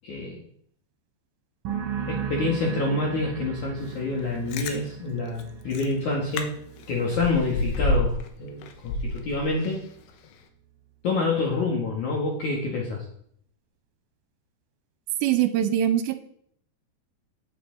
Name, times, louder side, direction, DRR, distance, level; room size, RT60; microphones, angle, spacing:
voice 1, 0.0-0.4 2.1-6.6 6.9-9.8 11.0-13.0, left 3 dB, 55° left, -2 dB, 2.6 m, -27 dB
sound 1, 1.6-9.1 9.4-9.9, right 8 dB, 55° right, 3.7 m, -37 dB
Chewing mastication, 4.3-4.8 5.4-5.5 5.7-5.9 6.3-6.4 6.8-8.3 8.6-9.9 10.2-10.3, left 1 dB, 85° left, 3.4 m, -28 dB
voice 2, 15.2-16.2, right 11 dB, 85° right, 10 dB, 3.0 m, -23 dB
18.0 x 7.6 x 3.9 m, 0.66 s
omnidirectional pair, 5.2 m